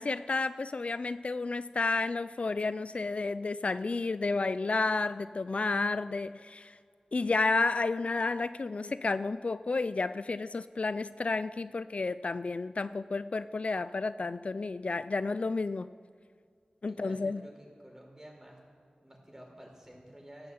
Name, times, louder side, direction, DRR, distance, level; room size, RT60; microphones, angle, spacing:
voice 1, 0.0-6.8 7.1-15.9 16.8-17.4, left 3 dB, 55° left, 14 dB, 0.3 m, -31 dB
voice 2, 16.9-18.6 19.0-20.5, equal, 20° right, 0 dB, 4.7 m, -51 dB
13.5 x 12.5 x 7.9 m, 2.2 s
cardioid pair, 45°, 3 cm